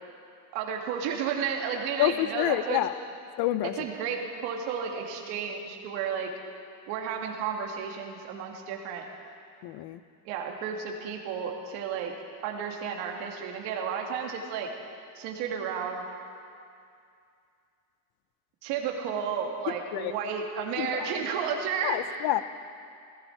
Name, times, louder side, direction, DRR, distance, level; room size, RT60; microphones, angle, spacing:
voice 1, 0.5-2.8 3.6-6.4 6.9-9.1 10.2-12.1 12.4-14.7 15.2-16.0 18.6-22.0, right 7 dB, 80° right, 1 dB, 2.3 m, -32 dB
voice 2, 2.0-2.9 3.4-3.9 9.6-10.0 19.9-20.1 20.8-21.1 21.8-22.4, left 14 dB, 60° left, 14 dB, 0.7 m, -28 dB
19.0 x 15.0 x 4.6 m, 2.4 s
cardioid pair, 135°, 41 cm